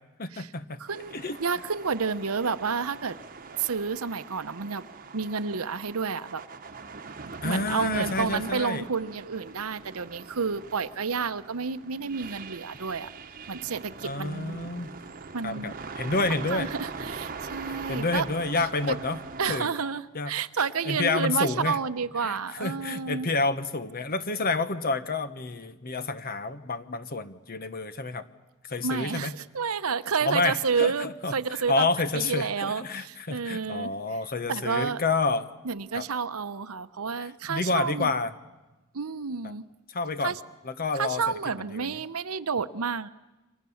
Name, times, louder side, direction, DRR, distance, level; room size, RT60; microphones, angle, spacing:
voice 1, 0.2-0.8 1.1-1.4 7.4-8.9 14.0-15.0 15.4-16.7 17.7-19.2 19.5-19.7 20.1-20.3 20.8-21.8 22.2-28.2 28.7-29.4 30.2-35.5 35.9-36.0 37.2-38.3 39.4-39.5 39.9-40.3 40.6-41.2 41.7-42.0, left 3 dB, 45° left, 11 dB, 1.2 m, -29 dB
voice 2, 0.8-3.2 3.6-4.9 5.1-6.4 7.2-13.1 13.5-14.7 15.3-15.7 16.3-18.2 18.9-19.0 19.4-23.3 28.8-31.9 32.1-33.9 34.5-35.0 35.6-38.1 38.9-39.6 40.2-40.4 40.9-43.1, right 5 dB, 90° right, 13 dB, 0.9 m, -30 dB
sound 1, 0.9-19.6, right 4 dB, 40° right, 1.2 m, -42 dB
30.0 x 25.0 x 7.2 m, 1.1 s
head